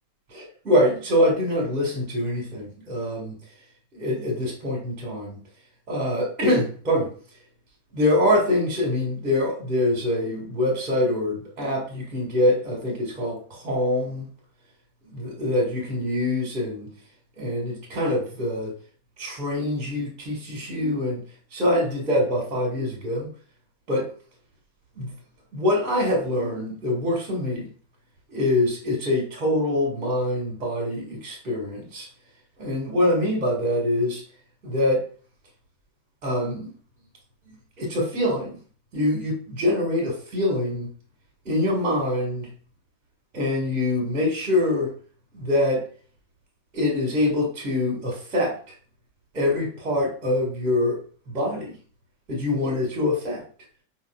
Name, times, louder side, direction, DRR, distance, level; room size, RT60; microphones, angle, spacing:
voice 1, 0.3-3.4 3.9-5.4 5.9-7.1 7.9-14.3 15.0-16.9 17.4-18.7 19.2-21.2 21.5-23.3 23.9-24.1 24.9-25.1 25.5-27.7 28.3-32.1 32.6-34.2 34.6-35.0 36.2-36.7 37.4-38.6 38.9-40.9 41.4-42.5 43.3-44.9 45.3-45.8 46.7-48.5 49.3-51.0 51.3-51.7 52.3-53.4, left 1 dB, 35° right, -3 dB, 1.5 m, -24 dB
5.0 x 2.4 x 2.3 m, 0.41 s
figure-of-eight pair, 90°, 0 cm